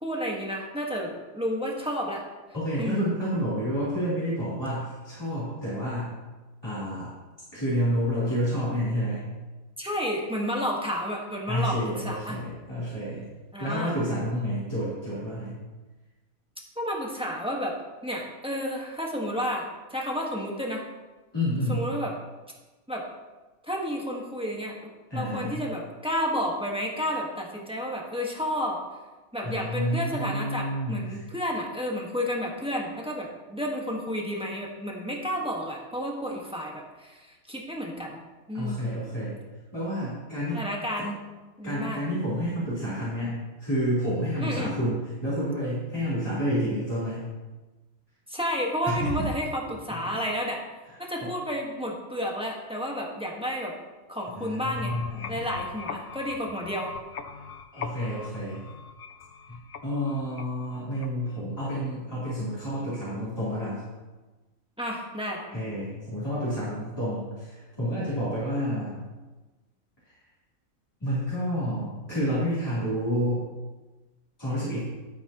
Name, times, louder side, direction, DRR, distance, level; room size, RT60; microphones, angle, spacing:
voice 1, 0.0-2.2 2.8-3.1 9.8-12.4 13.5-14.0 16.8-17.8 18.0-20.8 21.7-22.1 22.9-23.0 23.6-24.8 25.1-28.8 29.3-38.2 38.5-38.8 40.5-41.2 41.6-42.0 44.4-44.7 48.3-50.6 51.0-53.7 54.1-54.9 55.3-56.9 64.8-65.4, equal, 5° right, -1 dB, 1.4 m, -31 dB
voice 2, 2.5-6.1 6.6-7.1 7.5-9.3 11.5-13.3 13.6-15.6 21.3-21.9 25.1-25.6 29.4-31.2 38.5-39.4 39.7-40.6 41.0-41.1 41.6-47.3 48.8-49.2 49.6-49.7 50.9-51.3 54.3-55.4 57.7-58.7 59.5-63.8 65.5-69.0 70.0-70.1 71.0-73.4 74.4-74.8, equal, 15° left, -12 dB, 3.4 m, -29 dB
sound 1, 54.6-61.4, left 5 dB, 55° left, 0.7 m, -41 dB
12.0 x 8.8 x 3.0 m, 1.2 s
omnidirectional pair, 1.4 m